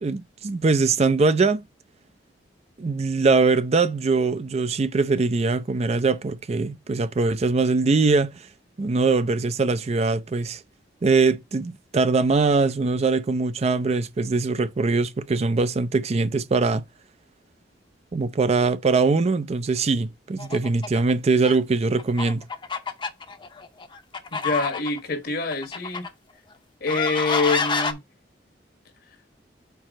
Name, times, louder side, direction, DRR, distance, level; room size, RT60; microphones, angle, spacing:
voice 1, 0.0-1.6 2.8-8.3 8.8-10.6 11.0-16.8 18.1-22.4, right 3 dB, 35° right, 0.4 m, -22 dB
sound 1, 20.4-21.1 21.4-21.6 22.0-25.0 25.5-26.1 26.9-27.9, left 4 dB, 25° left, 0.7 m, -28 dB
voice 2, 24.4-26.0 26.8-28.0, left 3 dB, 60° left, 1.2 m, -25 dB
4.7 x 4.2 x 5.0 m
head